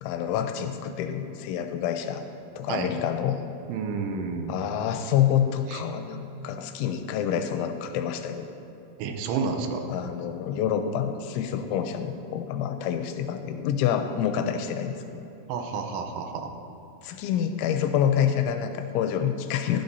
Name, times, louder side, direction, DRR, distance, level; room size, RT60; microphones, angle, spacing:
voice 1, 0.0-2.3 2.6-3.4 4.5-8.5 9.9-15.2 17.0-19.8, left 9 dB, 85° left, 7 dB, 2.9 m, -27 dB
voice 2, 3.7-4.6 5.7-5.8 9.0-9.9 15.5-16.5, right 5 dB, 80° right, 5 dB, 3.2 m, -30 dB
15.5 x 13.0 x 2.7 m, 2.9 s
omnidirectional pair, 5.4 m